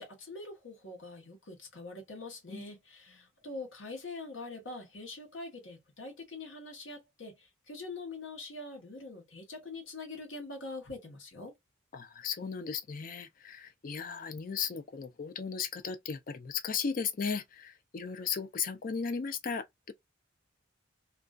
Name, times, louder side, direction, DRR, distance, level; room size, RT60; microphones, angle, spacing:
voice 1, 0.0-11.5, left 3 dB, 70° left, 1.0 m, -44 dB
voice 2, 11.9-19.9, left 6 dB, 45° left, 0.4 m, -36 dB
2.5 x 2.3 x 2.2 m
head